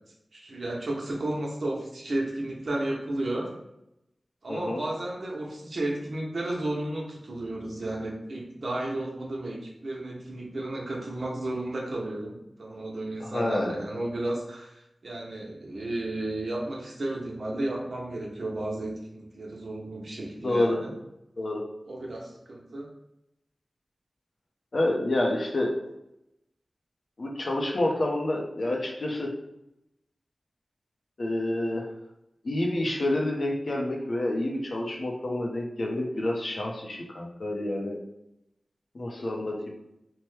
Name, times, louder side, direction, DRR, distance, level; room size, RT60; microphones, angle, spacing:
voice 1, 0.3-3.5 4.4-20.9 21.9-22.9, right 1 dB, 70° right, -3 dB, 0.7 m, -33 dB
voice 2, 4.5-4.8 13.2-13.8 20.4-20.8 21.4-21.6 24.7-25.7 27.2-29.3 31.2-31.9 32.4-38.0 38.9-39.7, left 1 dB, 65° left, 0 dB, 0.6 m, -28 dB
3.0 x 2.1 x 3.2 m, 0.86 s
wide cardioid pair, 55°, 0 cm